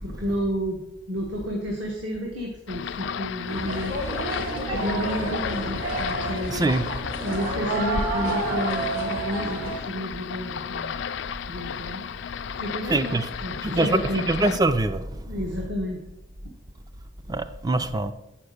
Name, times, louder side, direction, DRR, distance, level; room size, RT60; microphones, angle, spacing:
voice 1, 0.0-4.1 4.7-6.7 7.2-10.9 11.5-12.0 12.6-14.3 15.3-16.0, equal, 60° right, 1.4 m, -31 dB
sound 1, 2.7-14.6, left 8 dB, 60° left, 0.4 m, -34 dB
sound 2, 3.5-9.8, right 2 dB, 85° right, 3.0 m, -30 dB
voice 2, 6.5-6.8 12.9-13.2 13.6-14.0 14.3-15.0 17.3-18.1, right 2 dB, 20° right, 0.4 m, -23 dB
7.8 x 5.8 x 6.6 m
head